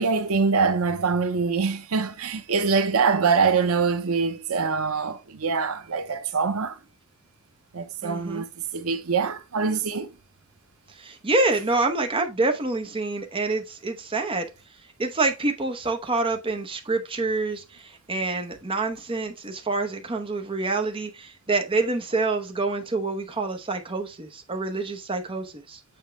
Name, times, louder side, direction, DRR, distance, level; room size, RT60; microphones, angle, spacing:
voice 1, 0.0-6.8 7.7-10.1, right 5 dB, 85° right, 0.7 m, -24 dB
voice 2, 8.0-8.4 10.9-14.5 15.0-25.8, right 3 dB, 25° right, 0.8 m, -27 dB
6.9 x 4.4 x 3.2 m
head